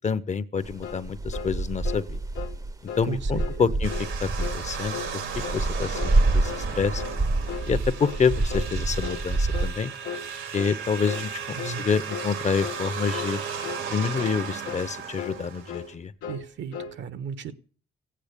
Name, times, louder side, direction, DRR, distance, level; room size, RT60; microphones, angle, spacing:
voice 1, 0.0-2.2 2.9-5.2 5.5-7.0 7.7-9.9 10.5-13.4 13.9-16.1, left 5 dB, 35° left, 14 dB, 0.8 m, -27 dB
sound 1, 0.6-9.7, right 2 dB, 20° right, 0.7 m, -27 dB
sound 2, 0.8-1.1 1.3-1.5 1.8-2.1 2.4-2.6 2.9-3.1 3.4-3.6 3.9-4.1 4.4-4.6 4.9-5.2 5.4-5.7 5.9-6.2 6.5-6.7 7.0-7.2 7.5-7.7 8.0-8.2 8.5-8.7 9.0-9.3 9.5-9.8 10.0-10.3 10.6-10.8 11.1-11.3 11.6-11.8 12.1-12.3 12.6-12.9 13.1-13.4 13.6-13.9 14.2-14.4 14.7-14.9 15.2-15.4 15.7-15.9 16.2-16.5 16.7-17.0, left 7 dB, 85° left, 1.1 m, -36 dB
sound 3, 3.8-15.9, right 7 dB, 85° right, 2.4 m, -35 dB
voice 2, 16.3-17.5, right 6 dB, 70° right, 13 dB, 1.2 m, -35 dB
15.5 x 8.7 x 6.8 m, 0.44 s
cardioid pair, 90°, 20 cm